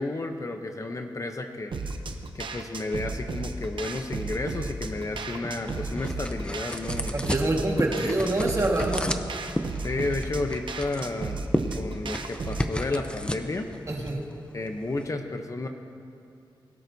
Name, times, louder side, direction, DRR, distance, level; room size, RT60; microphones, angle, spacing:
voice 1, 0.0-1.7 2.3-7.3 8.0-8.3 9.8-11.4 11.7-13.7 14.5-15.7, left 2 dB, 35° left, 5 dB, 0.8 m, -32 dB
sound 1, 1.7-12.7, right 3 dB, 70° right, 0.8 m, -34 dB
sound 2, 4.9-15.1, left 1 dB, 10° left, 0.6 m, -34 dB
voice 2, 7.1-9.2 13.9-14.3, right 2 dB, 35° right, 0 dB, 1.7 m, -26 dB
22.0 x 12.5 x 2.8 m, 2.5 s
wide cardioid pair, 100°, 9 cm